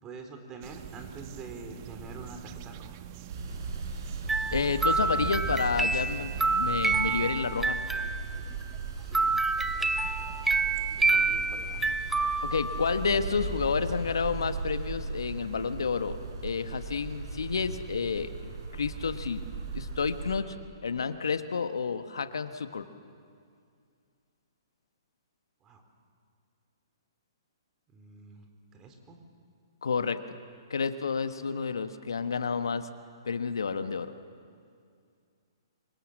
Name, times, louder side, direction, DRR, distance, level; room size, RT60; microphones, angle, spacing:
voice 1, 0.0-3.0 9.0-9.2 9.7-9.9 11.0-12.0 25.6-25.8 27.9-29.2, right 3 dB, 25° right, 5 dB, 4.0 m, -45 dB
sound 1, 0.6-7.3, right 11 dB, 40° right, 1.1 m, -41 dB
sound 2, 3.3-20.4, right 4 dB, 60° right, 4.6 m, -38 dB
sound 3, 4.3-8.6 9.1-13.1, right 3 dB, 5° right, 0.8 m, -28 dB
voice 2, 4.5-7.8 12.4-16.2 16.4-19.4 19.7-20.5 20.8-22.9 29.8-30.2 30.7-32.9 33.2-34.1, left 5 dB, 70° left, 10 dB, 1.3 m, -30 dB
26.5 x 25.0 x 7.5 m, 2.3 s
figure-of-eight pair, 125°, 2 cm